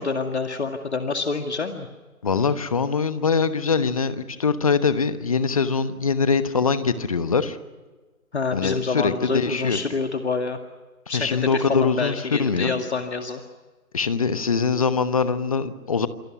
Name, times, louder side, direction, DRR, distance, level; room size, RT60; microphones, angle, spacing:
voice 1, 0.0-1.9 8.3-10.6 11.1-13.4, left 4 dB, 50° left, 5 dB, 2.1 m, -27 dB
voice 2, 2.2-7.6 8.5-9.8 11.1-12.7 13.9-16.1, left 5 dB, 25° left, 13 dB, 1.1 m, -23 dB
28.0 x 25.5 x 6.0 m, 1.3 s
figure-of-eight pair, 150°, 43 cm